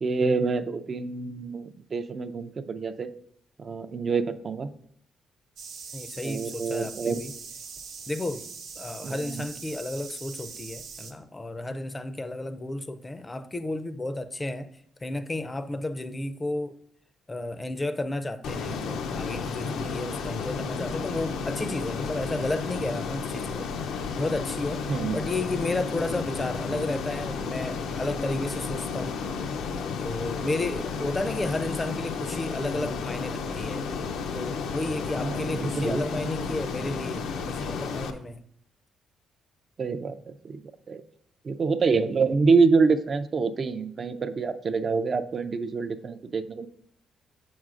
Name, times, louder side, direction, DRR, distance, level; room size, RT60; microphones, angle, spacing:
voice 1, 0.0-3.1 3.6-4.7 6.2-7.2 9.0-9.4 24.9-25.2 35.2-36.0 39.8-40.2 40.4-40.6 40.9-41.0 41.4-46.7, right 4 dB, 40° right, 0.4 m, -26 dB
sound 1, 5.6-11.1, right 5 dB, 85° right, 0.9 m, -42 dB
voice 2, 5.9-7.3 8.1-8.5 8.8-14.7 15.0-16.8 17.3-23.7 24.2-24.9 25.1-29.2 30.0-33.8 34.3-38.4, left 2 dB, 20° left, 0.4 m, -32 dB
Ocean, 18.4-38.1, left 5 dB, 80° left, 0.5 m, -32 dB
7.3 x 6.1 x 2.5 m
cardioid pair, 90°, 0 cm